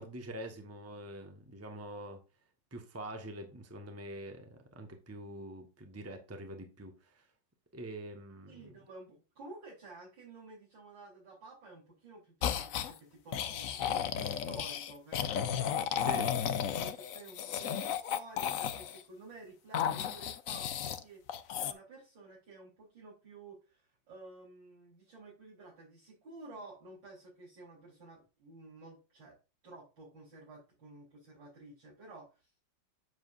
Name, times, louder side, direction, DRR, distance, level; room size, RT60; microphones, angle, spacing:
voice 1, 0.0-2.2 2.7-7.2 7.7-8.7 16.1-16.3, right 1 dB, 10° right, 1.1 m, -45 dB
voice 2, 8.5-16.4 16.8-29.4 29.6-32.6, right 2 dB, 80° right, 4.3 m, -52 dB
sound 1, 12.4-12.9 13.3-19.0 19.7-21.0 21.3-21.7, left 9 dB, 65° left, 0.9 m, -34 dB
8.0 x 7.5 x 2.6 m
omnidirectional pair, 2.0 m